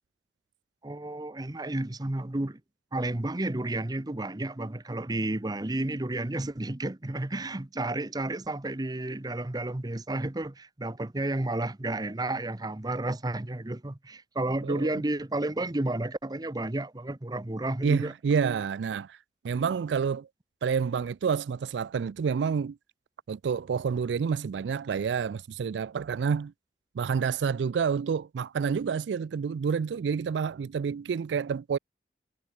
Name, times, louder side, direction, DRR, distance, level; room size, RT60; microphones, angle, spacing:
voice 1, 0.8-2.6 2.9-18.1, right 2 dB, 25° right, 0.8 m, -31 dB
voice 2, 14.6-14.9 17.8-19.2 19.4-20.3 20.6-22.8 23.3-26.5 26.9-31.8, right 6 dB, 90° right, 0.4 m, -28 dB
head